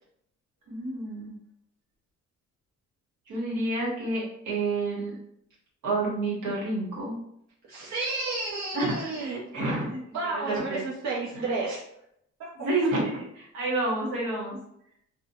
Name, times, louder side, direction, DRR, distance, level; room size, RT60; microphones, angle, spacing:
voice 1, 0.7-1.3 3.3-5.1 5.8-7.2 8.7-10.0 10.4-10.8 11.4-11.5 12.6-14.6, right 2 dB, 85° right, -4 dB, 1.1 m, -29 dB
voice 2, 7.7-9.4 9.9-11.8 12.6-12.7, right 3 dB, 65° right, -6 dB, 0.7 m, -32 dB
2.7 x 2.1 x 2.6 m, 0.74 s
cardioid pair, 90°, 30 cm